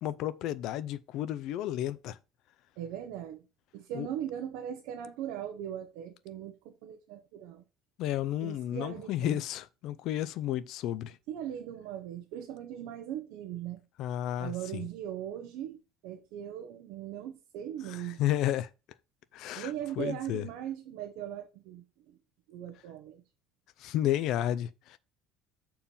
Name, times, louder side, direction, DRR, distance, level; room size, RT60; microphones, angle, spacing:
voice 1, 0.0-2.2 3.9-4.1 8.0-11.2 14.0-14.8 17.8-18.7 19.3-19.7 20.0-20.5 23.8-25.0, left 12 dB, 50° left, 0.4 m, -32 dB
voice 2, 2.8-3.4 3.7-7.6 8.4-9.4 11.3-13.8 14.4-18.3 19.5-22.2 22.5-23.2, right 10 dB, 65° right, 1.0 m, -39 dB
7.2 x 4.5 x 5.4 m
cardioid pair, 170°, 0 cm